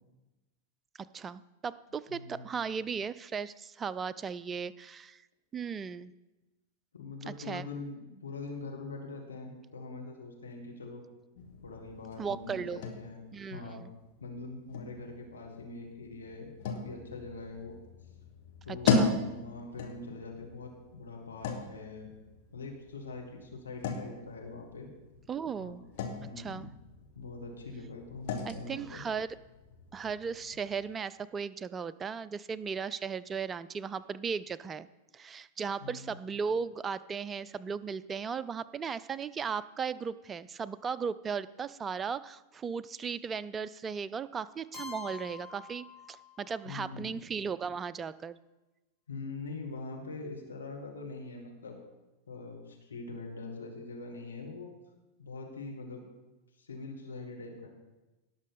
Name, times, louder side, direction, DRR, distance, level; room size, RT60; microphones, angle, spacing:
voice 1, 1.1-5.2 5.5-6.1 7.3-7.7 12.2-12.8 13.3-13.9 18.7-19.2 25.3-25.8 26.4-26.7 28.4-29.3 29.9-34.9 35.1-48.4, right 6 dB, 20° right, 17 dB, 0.4 m, -36 dB
voice 2, 2.1-2.5 6.9-11.0 11.6-13.2 13.5-13.8 14.2-17.8 18.7-22.1 22.5-24.9 25.6-25.8 26.2-26.7 27.2-29.0 35.8-36.2 46.6-47.1 49.1-51.8 52.3-54.7 55.2-56.0 56.6-57.7, left 3 dB, 75° left, 1 dB, 1.8 m, -43 dB
sound 1, 11.3-30.9, left 4 dB, 50° left, 1.7 m, -38 dB
Keyboard (musical), 44.7-46.7, left 5 dB, 10° left, 3.8 m, -46 dB
18.0 x 6.2 x 4.2 m, 1.1 s
figure-of-eight pair, 90°, 0 cm